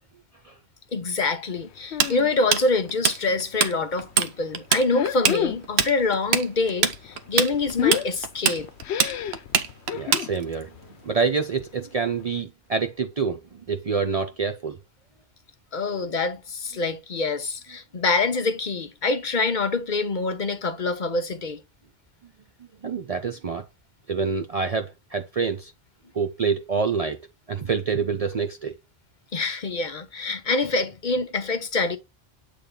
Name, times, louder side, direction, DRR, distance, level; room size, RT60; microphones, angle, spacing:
voice 1, 0.9-8.7 15.7-21.6 29.3-32.0, left 3 dB, 50° left, 0.8 m, -25 dB
sound 1, 1.9-2.3 2.7-3.4 3.8-4.1 4.8-6.0 6.3-10.3 10.7-11.0 11.3-11.4 11.6-11.7 12.2-12.3, left 9 dB, 80° left, 0.8 m, -30 dB
Tools, 2.0-3.7 4.0-4.3 4.5-10.6, right 7 dB, 75° right, 1.0 m, -22 dB
voice 2, 9.9-14.8 22.8-23.7 24.1-25.7 26.1-27.2 27.5-28.7, right 5 dB, 45° right, 0.5 m, -27 dB
8.2 x 3.3 x 3.6 m
omnidirectional pair, 1.1 m